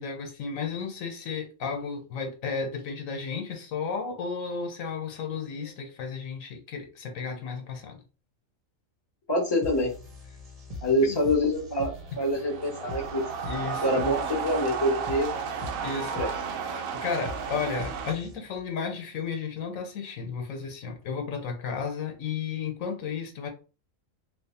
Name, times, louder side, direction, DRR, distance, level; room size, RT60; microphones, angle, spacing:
voice 1, 0.0-8.0 11.0-11.2 13.5-13.9 15.8-16.1 17.0-23.5, left 5 dB, 80° left, 1.2 m, -33 dB
voice 2, 9.3-9.9 10.8-13.2 13.8-15.3 16.1-16.3, left 1 dB, 20° left, 0.9 m, -25 dB
sound 1, 9.6-18.6, left 1 dB, 35° right, 0.8 m, -42 dB
sound 2, 12.1-18.1, right 6 dB, 80° right, 1.0 m, -33 dB
3.1 x 2.1 x 4.1 m
omnidirectional pair, 1.4 m